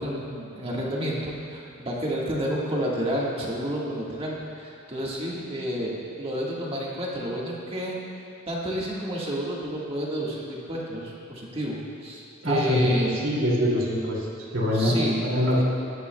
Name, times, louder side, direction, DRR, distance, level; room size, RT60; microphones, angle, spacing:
voice 1, 0.0-7.9 8.5-13.2 14.7-15.3, equal, 30° right, -4 dB, 1.6 m, -30 dB
voice 2, 12.4-13.0 13.2-14.2 14.5-15.6, equal, 85° right, -4 dB, 2.5 m, -23 dB
17.0 x 11.0 x 2.3 m, 2.6 s
head